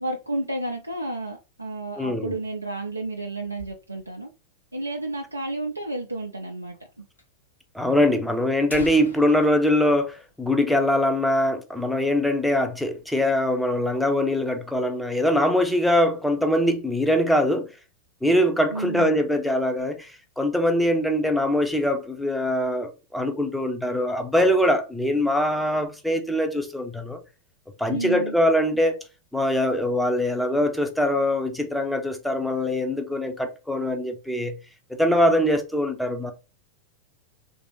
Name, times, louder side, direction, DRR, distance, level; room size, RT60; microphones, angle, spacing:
voice 1, 0.0-4.3 4.7-7.0 18.7-19.2 27.9-28.4, right 2 dB, 85° right, 0.4 m, -31 dB
voice 2, 2.0-2.3 7.7-17.7 18.2-27.2 27.8-29.0 29.3-34.6 35.0-36.3, left 1 dB, ahead, 0.6 m, -23 dB
sound 1, 2.5-4.3 4.6-4.7 4.9-5.0 5.7-5.8 6.7-6.9 7.2-7.3 8.0-8.1 8.5-11.1 11.4-11.5 11.9-12.2 12.6-13.2, left 1 dB, 75° left, 0.7 m, -45 dB
3.3 x 2.6 x 3.0 m
figure-of-eight pair, 90°, 0 cm